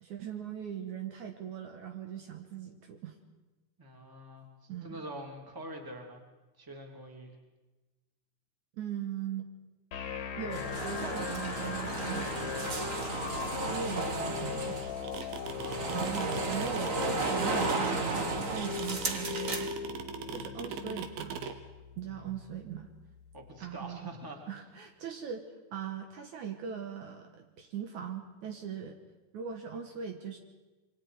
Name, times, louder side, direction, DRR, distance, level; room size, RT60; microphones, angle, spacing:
voice 1, 0.0-3.1 4.7-5.0 8.8-9.5 10.4-12.6 13.5-14.8 15.9-19.7 20.3-21.4 22.0-22.9 23.6-24.1 24.5-25.4 25.7-29.0 29.3-30.4, right 8 dB, 65° right, 4 dB, 2.4 m, -40 dB
voice 2, 3.8-6.2 6.6-7.3 15.4-16.0 22.0-22.4 23.3-24.4, right 1 dB, 5° right, 2 dB, 2.2 m, -45 dB
sound 1, 9.9-23.9, left 7 dB, 60° left, 2.4 m, -39 dB
sound 2, 10.5-19.7, right 3 dB, 50° right, 0.9 m, -34 dB
sound 3, 14.8-21.5, right 8 dB, 80° right, 3.1 m, -40 dB
26.5 x 24.0 x 4.9 m, 1.2 s
omnidirectional pair, 4.1 m